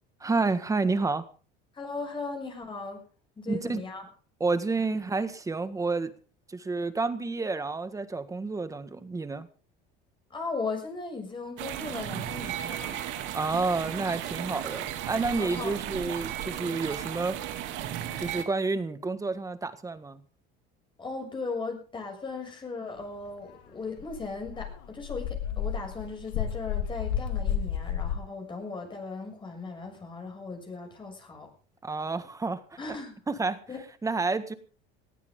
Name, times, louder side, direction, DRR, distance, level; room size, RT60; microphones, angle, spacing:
voice 1, 0.2-1.2 3.5-3.8 4.4-6.1 6.5-9.5 13.3-17.4 18.2-20.2 31.8-32.6 33.3-33.6 34.0-34.5, right 3 dB, 15° right, 11 dB, 1.7 m, -29 dB
voice 2, 1.7-3.0 3.4-4.0 10.3-13.0 15.4-15.8 21.0-31.5 32.8-33.2 33.7-33.8, left 4 dB, 25° left, 2 dB, 6.7 m, -37 dB
sound 1, 11.6-18.4, right 11 dB, 70° right, 2.8 m, -35 dB
Dog, 23.5-23.6 24.0-28.1, left 9 dB, 85° left, 3.6 m, -31 dB
19.5 x 15.0 x 3.8 m, 0.38 s
cardioid pair, 120°, 21 cm